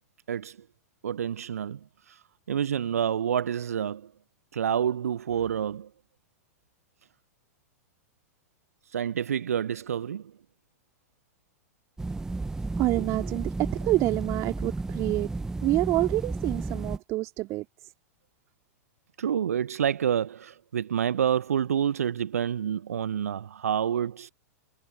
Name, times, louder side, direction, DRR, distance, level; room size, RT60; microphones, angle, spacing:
voice 1, 1.0-1.8 2.1-4.1 4.5-5.9 8.9-10.3 19.2-24.3, right 8 dB, 65° right, 0.7 m, -28 dB
sound 1, 12.0-17.0, right 3 dB, 5° right, 0.8 m, -32 dB
voice 2, 12.8-15.3 15.6-17.7, right 19 dB, 35° right, 2.6 m, -27 dB
figure-of-eight pair, 100°, 8 cm